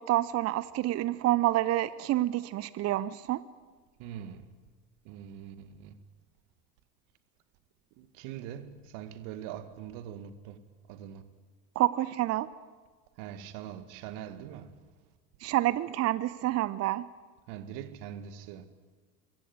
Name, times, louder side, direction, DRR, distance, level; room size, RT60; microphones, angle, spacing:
voice 1, 0.0-3.4 11.8-12.5 15.4-17.0, right 15 dB, 35° right, 0.7 m, -28 dB
voice 2, 4.0-4.5 5.1-5.9 8.0-10.6 10.9-11.2 13.2-14.8 17.5-18.6, right 10 dB, 55° right, 2.1 m, -42 dB
24.0 x 15.0 x 9.5 m
hypercardioid pair, 80°, 47 cm